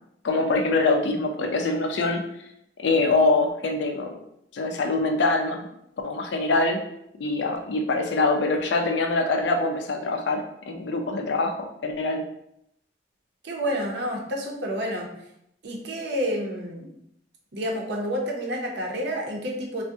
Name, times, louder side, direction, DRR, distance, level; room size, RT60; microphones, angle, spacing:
voice 1, 0.2-2.2 2.8-4.2 4.5-5.7 6.0-6.8 7.2-11.6 11.8-12.2, left 3 dB, 80° left, 4 dB, 0.4 m, -24 dB
voice 2, 13.4-15.1 15.6-16.9 17.5-19.8, equal, 70° right, 0 dB, 0.6 m, -29 dB
3.4 x 2.1 x 2.7 m, 0.78 s
head